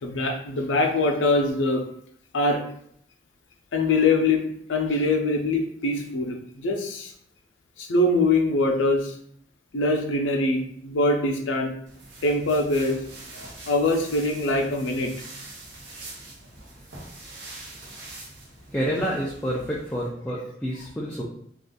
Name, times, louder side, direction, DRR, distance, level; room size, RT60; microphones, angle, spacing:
voice 1, 0.0-1.8 2.3-2.6 3.7-4.4 4.7-7.1 7.8-9.1 9.7-11.7 12.2-13.0 13.4-15.1, left 2 dB, 90° left, 3 dB, 0.6 m, -23 dB
sound 1, 11.9-20.1, right 2 dB, 70° right, 0.9 m, -43 dB
voice 2, 18.7-21.2, equal, 10° left, -5 dB, 0.4 m, -28 dB
2.4 x 2.4 x 3.8 m, 0.68 s
head